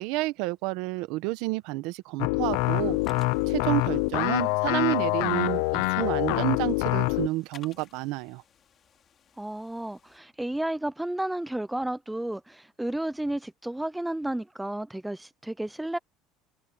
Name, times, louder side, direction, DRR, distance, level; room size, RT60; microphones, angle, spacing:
voice 1, 0.0-3.0 3.5-8.4, right 20 dB, 70° right, 1.0 m, -30 dB
sound 1, 2.2-7.3, left 23 dB, 80° left, 0.6 m, -25 dB
sound 2, 2.4-10.2, left 8 dB, 30° left, 5.4 m, -58 dB
voice 2, 9.4-16.0, right 1 dB, 5° right, 0.5 m, -32 dB
cardioid pair, 155°, 0 cm